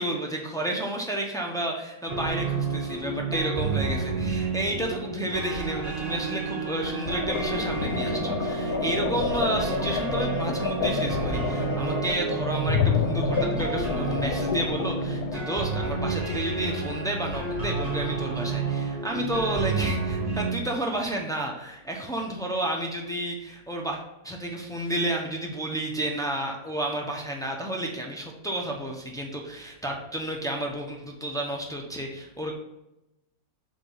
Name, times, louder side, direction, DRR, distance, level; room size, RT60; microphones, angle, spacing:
voice 1, 0.0-32.5, right 1 dB, 5° left, 0 dB, 0.6 m, -31 dB
sound 1, 2.1-20.6, right 4 dB, 25° right, 1.1 m, -30 dB
sound 2, 7.1-15.6, left 6 dB, 60° left, 1.1 m, -29 dB
7.7 x 3.7 x 5.6 m, 0.90 s
omnidirectional pair, 2.0 m